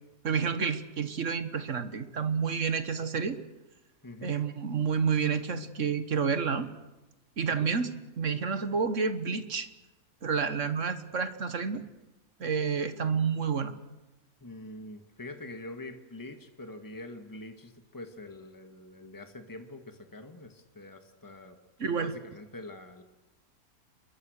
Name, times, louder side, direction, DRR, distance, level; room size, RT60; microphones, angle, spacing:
voice 1, 0.2-3.4 4.2-6.7 7.4-7.9 8.2-9.7 10.2-11.8 12.4-13.7 21.8-22.1, right 6 dB, 55° right, 11 dB, 1.7 m, -29 dB
voice 2, 4.0-4.3 7.4-7.7 11.7-11.9 14.4-21.6 21.8-23.0, left 2 dB, 15° left, 7 dB, 1.8 m, -45 dB
29.0 x 22.5 x 6.5 m, 1.1 s
omnidirectional pair, 1.6 m